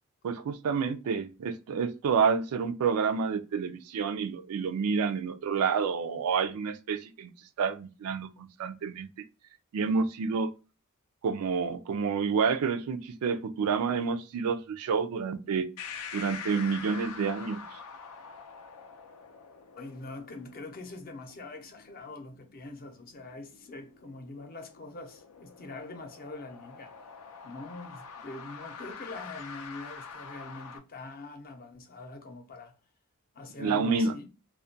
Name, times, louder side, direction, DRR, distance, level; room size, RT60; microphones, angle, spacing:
voice 1, 0.2-7.3 7.6-9.1 9.7-10.5 11.2-15.7 16.1-17.6 33.6-34.2, right 5 dB, 75° right, 0.3 m, -29 dB
sound 1, 15.8-30.8, left 5 dB, 90° left, 0.5 m, -46 dB
voice 2, 19.8-27.0 27.4-32.8 33.3-34.3, left 2 dB, 40° left, 0.6 m, -43 dB
2.3 x 2.1 x 2.5 m
head